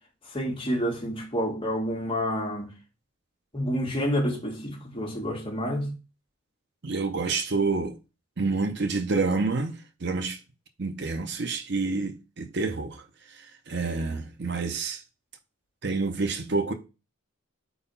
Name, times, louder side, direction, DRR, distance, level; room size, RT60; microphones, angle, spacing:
voice 1, 0.2-2.7 3.5-5.9, equal, 25° left, 1.8 m, -29 dB
voice 2, 6.8-8.0 8.4-10.4 10.8-13.0 13.3-15.0 15.8-16.7, right 3 dB, 55° right, 0.7 m, -28 dB
4.9 x 4.0 x 5.5 m
head